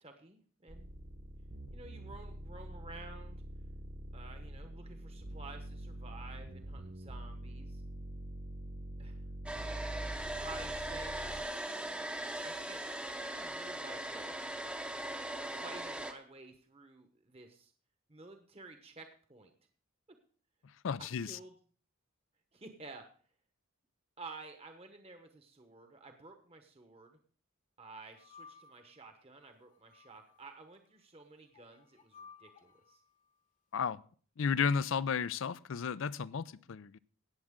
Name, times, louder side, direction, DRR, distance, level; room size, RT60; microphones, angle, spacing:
voice 1, 0.0-0.9 1.7-3.4 4.1-7.8 9.0-9.2 10.4-11.1 11.6-12.1 12.4-12.8 13.1-14.5 15.6-17.7 18.1-19.5 21.0-21.5 22.5-23.0 24.2-27.2 27.8-33.0, right 3 dB, 25° right, 1.0 m, -52 dB
sound 1, 0.7-11.4, right 1 dB, 55° right, 1.3 m, -45 dB
Domestic sounds home sounds, 9.5-16.1, right 1 dB, 5° right, 0.7 m, -40 dB
voice 2, 20.8-21.3 33.7-34.0 34.4-37.0, left 6 dB, 65° left, 0.4 m, -33 dB
sound 2, 28.1-29.0 29.7-30.6 31.5-33.0, left 5 dB, 35° left, 1.0 m, -57 dB
18.0 x 7.4 x 3.7 m
head